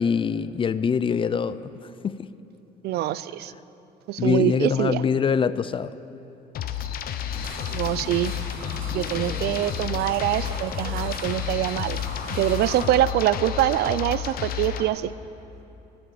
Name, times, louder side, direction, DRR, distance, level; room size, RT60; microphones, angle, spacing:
voice 1, 0.0-2.3 4.2-5.9, left 6 dB, 30° left, 15 dB, 0.5 m, -24 dB
voice 2, 2.8-3.5 4.1-5.0 7.7-8.3 8.9-12.0 12.3-15.1, right 13 dB, 75° right, 17 dB, 0.5 m, -24 dB
sound 1, 6.5-14.9, left 10 dB, 60° left, 0.9 m, -31 dB
sound 2, 7.3-12.8, right 2 dB, 55° right, 3.2 m, -39 dB
20.5 x 8.7 x 6.8 m, 2.9 s
cardioid pair, 110°, 17 cm